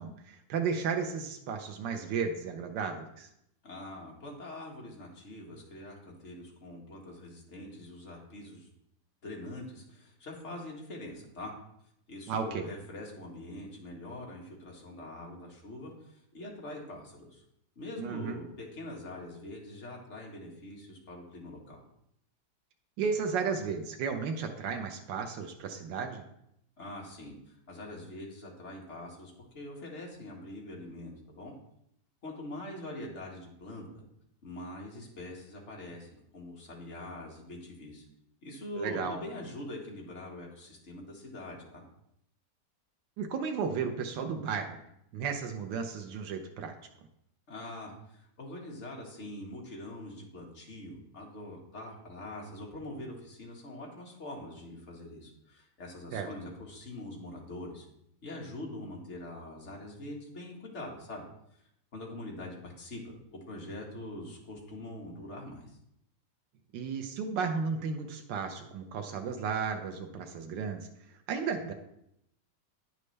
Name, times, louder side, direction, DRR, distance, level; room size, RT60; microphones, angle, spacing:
voice 1, 0.0-3.3 12.3-12.7 18.0-18.4 23.0-26.2 38.7-39.2 43.2-44.8 45.1-46.7 56.1-56.3 66.7-70.9 71.3-71.7, right 5 dB, 85° right, 4 dB, 1.5 m, -34 dB
voice 2, 3.6-8.7 9.2-11.5 12.1-15.9 16.3-17.4 17.8-21.8 26.8-31.5 32.2-34.0 34.4-38.0 38.4-41.8 47.5-57.9 58.2-61.2 61.9-65.7, left 1 dB, 40° left, -2 dB, 1.9 m, -44 dB
9.4 x 6.6 x 3.3 m, 0.76 s
omnidirectional pair, 1.9 m